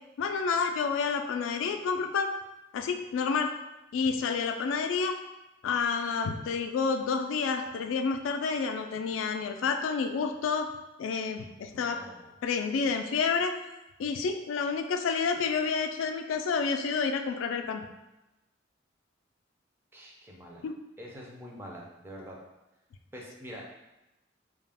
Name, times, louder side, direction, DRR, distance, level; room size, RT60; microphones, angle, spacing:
voice 1, 0.2-2.3 2.7-3.5 3.9-5.2 5.6-10.7 11.0-12.0 12.4-13.5 14.0-17.8 20.6-20.7, left 5 dB, 90° left, 6 dB, 0.3 m, -29 dB
voice 2, 11.7-12.3 19.9-20.6 21.0-22.4 23.1-23.6, equal, 10° right, -3 dB, 0.5 m, -45 dB
2.3 x 2.1 x 3.3 m, 0.98 s
head